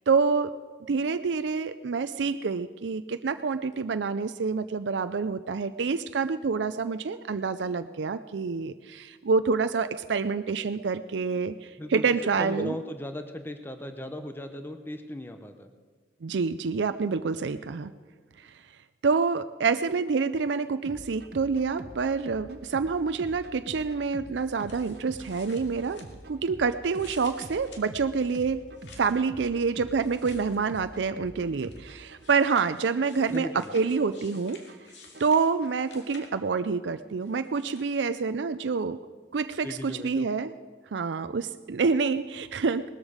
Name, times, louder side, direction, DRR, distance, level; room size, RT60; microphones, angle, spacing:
voice 1, 0.1-0.5 0.9-12.8 16.2-17.9 18.4-18.5 19.0-26.0 26.3-28.6 29.0-34.6 35.2-39.0 39.3-40.5 40.9-42.9, right 5 dB, 80° right, 11 dB, 0.5 m, -27 dB
voice 2, 12.4-15.7 33.3-33.7 39.6-40.3, equal, 10° left, 7 dB, 0.7 m, -37 dB
sound 1, 20.8-35.9, right 1 dB, 60° right, 1.0 m, -47 dB
sound 2, 24.4-26.5 26.9-29.3 30.0-31.0 31.6-36.6 37.2-38.0, left 3 dB, 80° left, 2.3 m, -53 dB
19.5 x 13.5 x 5.0 m, 1.5 s
head